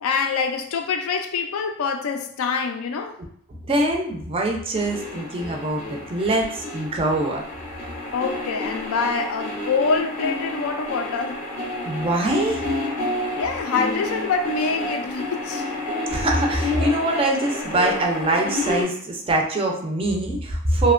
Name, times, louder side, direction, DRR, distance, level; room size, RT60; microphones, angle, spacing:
voice 1, 0.0-3.2 8.1-11.4 13.3-15.7, left 5 dB, 85° left, 0.4 m, -25 dB
voice 2, 3.7-7.4 11.8-12.7 16.1-20.9, right 2 dB, 25° right, 0.4 m, -23 dB
sound 1, 4.7-18.8, left 2 dB, 30° left, 0.6 m, -30 dB
2.8 x 2.1 x 2.4 m
head